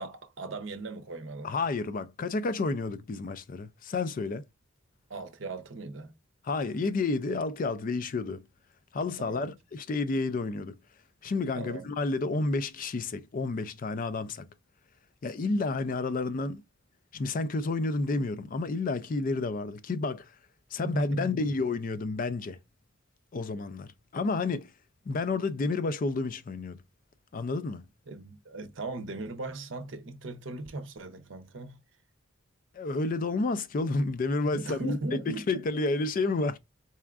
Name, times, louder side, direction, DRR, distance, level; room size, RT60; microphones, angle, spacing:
voice 1, 0.0-1.5 5.1-6.1 9.2-9.5 11.6-11.9 20.8-21.5 28.1-31.8 34.5-35.5, right 2 dB, 65° right, 0.7 m, -38 dB
voice 2, 1.4-4.4 6.4-8.4 8.9-10.8 11.2-14.5 15.2-16.6 17.1-20.3 20.7-22.6 23.3-24.7 25.1-26.8 27.3-27.9 32.7-36.6, left 3 dB, 45° left, 0.4 m, -30 dB
4.2 x 3.5 x 2.4 m
head